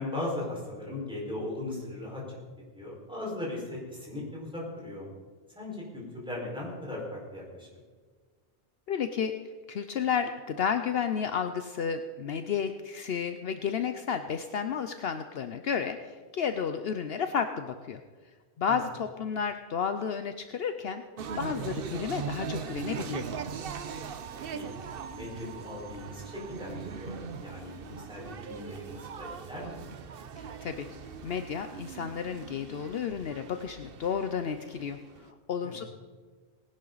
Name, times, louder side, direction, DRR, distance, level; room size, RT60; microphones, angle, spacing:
voice 1, 0.0-2.4 2.7-5.1 5.5-7.8 18.7-18.8 24.5-24.7 25.1-29.8 35.6-35.8, left 2 dB, 5° right, -4 dB, 4.9 m, -38 dB
voice 2, 8.9-9.3 9.7-18.0 18.6-21.0 21.3-23.3 30.4-30.9 31.2-35.8, left 7 dB, 65° left, 8 dB, 0.9 m, -32 dB
sound 1, 21.2-35.2, right 6 dB, 60° right, 0.9 m, -40 dB
19.0 x 11.0 x 4.0 m, 1.5 s
omnidirectional pair, 1.1 m